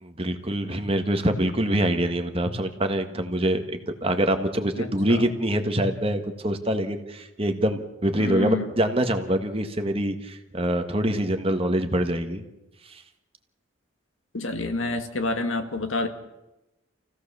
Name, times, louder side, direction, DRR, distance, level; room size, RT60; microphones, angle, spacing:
voice 1, 0.0-12.4 12.8-13.0, right 1 dB, 30° right, 6 dB, 1.6 m, -25 dB
voice 2, 4.8-5.2 8.2-8.7 14.3-16.1, left 2 dB, 75° left, 6 dB, 2.1 m, -28 dB
28.0 x 16.5 x 6.9 m, 0.98 s
head